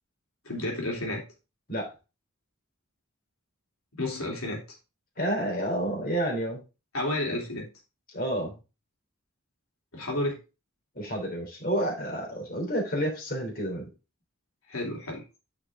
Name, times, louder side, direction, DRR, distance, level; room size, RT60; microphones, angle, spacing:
voice 1, 0.4-1.2 3.9-4.6 6.9-7.6 9.9-10.4 14.7-15.2, left 1 dB, 90° left, 0 dB, 3.0 m, -31 dB
voice 2, 5.2-6.6 8.1-8.5 10.9-13.9, right 1 dB, 45° left, 0 dB, 3.1 m, -29 dB
9.7 x 5.3 x 3.6 m, 0.29 s
head